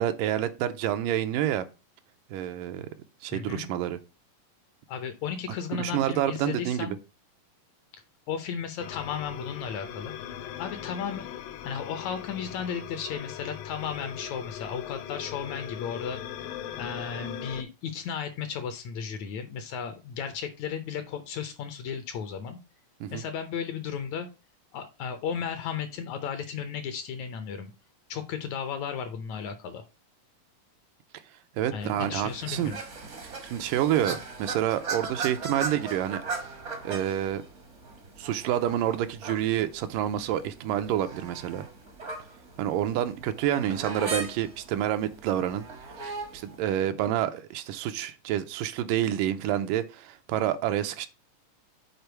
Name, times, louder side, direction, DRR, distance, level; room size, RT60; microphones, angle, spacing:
voice 1, 0.0-1.7 2.3-2.9 3.2-4.0 5.7-7.0 23.0-23.2 31.6-32.7 33.5-36.2 36.8-37.4 38.2-41.7 42.6-45.6 46.0-51.1, right 11 dB, 85° right, 2.2 m, -28 dB
voice 2, 3.3-3.7 4.9-7.0 7.9-8.0 8.3-10.2 10.6-11.3 11.6-16.2 16.8-22.6 23.1-24.3 24.7-27.7 28.1-29.8 31.7-32.8 34.1-34.2, left 7 dB, 75° left, 1.8 m, -34 dB
sound 1, 8.8-17.6, left 10 dB, 90° left, 2.3 m, -39 dB
sound 2, 31.8-46.6, right 4 dB, 55° right, 0.7 m, -39 dB
6.8 x 4.4 x 4.5 m
omnidirectional pair, 3.8 m